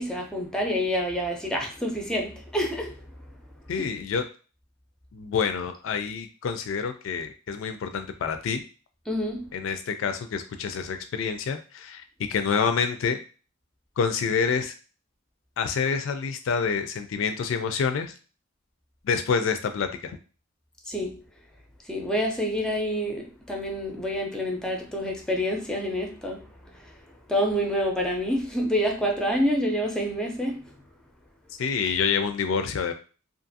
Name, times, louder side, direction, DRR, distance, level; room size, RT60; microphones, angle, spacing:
voice 1, 0.0-3.1 3.8-3.9 9.1-9.5 20.9-21.2 21.8-27.0 27.3-30.7, equal, 5° left, 0.5 m, -28 dB
voice 2, 3.7-4.2 5.1-8.6 9.5-12.0 12.3-13.2 14.0-14.7 15.6-18.1 19.0-20.2 31.6-32.9, left 6 dB, 70° left, 0.3 m, -27 dB
2.6 x 2.5 x 2.6 m
head